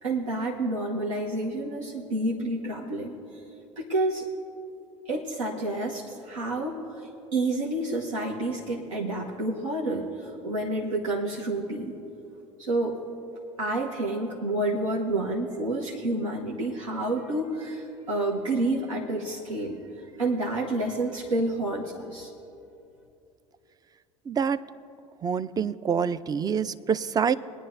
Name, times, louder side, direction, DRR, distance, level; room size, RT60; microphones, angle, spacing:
voice 1, 0.0-3.2 3.8-4.3 5.1-12.0 12.6-13.0 13.6-22.3, right 2 dB, 90° right, -4 dB, 1.1 m, -29 dB
voice 2, 24.3-24.6 25.2-27.3, right 7 dB, 25° right, 16 dB, 0.4 m, -26 dB
21.5 x 9.8 x 2.6 m, 2.8 s
hypercardioid pair, 70°, 16 cm